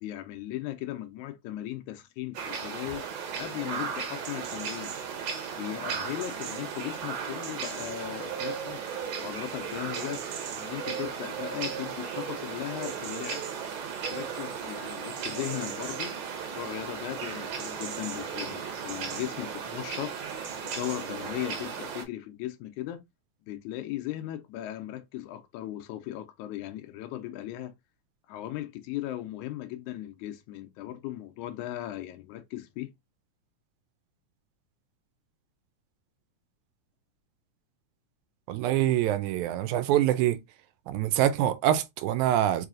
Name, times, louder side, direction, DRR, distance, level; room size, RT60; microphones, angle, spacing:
voice 1, 0.0-3.1 3.4-4.9 5.6-8.8 9.2-10.2 10.6-13.5 14.1-20.2 20.6-23.0 23.5-27.7 28.3-32.9, left 14 dB, 80° left, 1.9 m, -37 dB
sound 1, 2.3-22.0, right 6 dB, 65° right, 1.8 m, -35 dB
voice 2, 38.5-40.4 40.9-42.7, right 12 dB, 80° right, 1.9 m, -25 dB
4.8 x 3.1 x 2.4 m
omnidirectional pair, 3.5 m